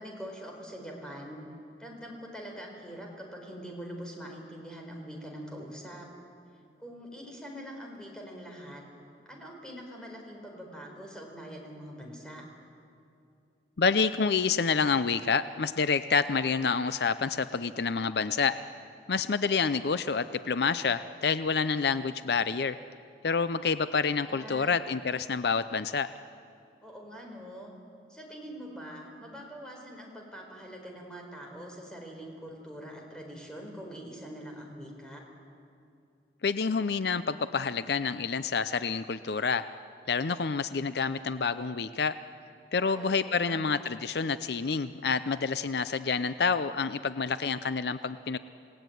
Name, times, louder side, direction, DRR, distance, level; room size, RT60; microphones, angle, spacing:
voice 1, 0.0-1.4 1.8-6.1 6.8-8.8 9.2-12.4 24.2-24.7 26.8-27.7 28.1-35.2 42.8-43.7, equal, 5° left, 0 dB, 4.6 m, -44 dB
voice 2, 13.8-18.6 19.1-22.8 23.2-26.1 36.4-39.7 40.1-42.2 42.7-48.4, left 5 dB, 65° left, 13 dB, 0.6 m, -28 dB
28.0 x 18.5 x 9.3 m, 2.5 s
head